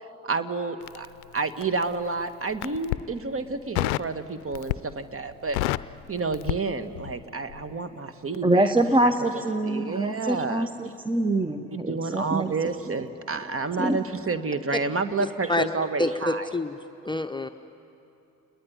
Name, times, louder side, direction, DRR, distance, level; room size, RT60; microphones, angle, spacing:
voice 1, 0.2-1.1 1.3-5.6 6.1-8.7 9.0-9.3 9.6-10.9 11.9-16.5, right 4 dB, 30° right, 10 dB, 1.6 m, -30 dB
Crackle, 0.8-1.9 2.5-3.1 3.7-4.1 4.5-5.0 5.3-7.2 7.5-7.7, left 18 dB, 75° left, 0.6 m, -29 dB
voice 2, 8.4-12.5 13.8-14.0, right 1 dB, 10° right, 9 dB, 1.1 m, -24 dB
voice 3, 16.0-16.7 17.0-17.5, left 2 dB, 10° left, 5 dB, 1.0 m, -26 dB
28.5 x 21.5 x 9.8 m, 2.8 s
hypercardioid pair, 55°, 42 cm